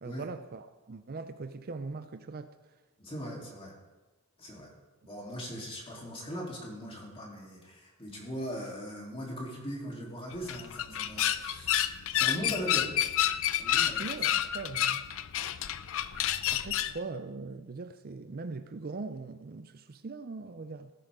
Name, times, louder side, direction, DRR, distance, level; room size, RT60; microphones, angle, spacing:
voice 1, 0.0-2.7 14.0-15.1 16.5-20.9, right 3 dB, 45° right, 0.5 m, -41 dB
voice 2, 3.0-3.7 4.4-4.7 5.0-11.8 12.1-13.0 13.6-14.1, equal, 25° left, 3.3 m, -40 dB
sound 1, 10.3-17.0, left 11 dB, 65° left, 0.5 m, -29 dB
17.0 x 10.5 x 3.7 m
head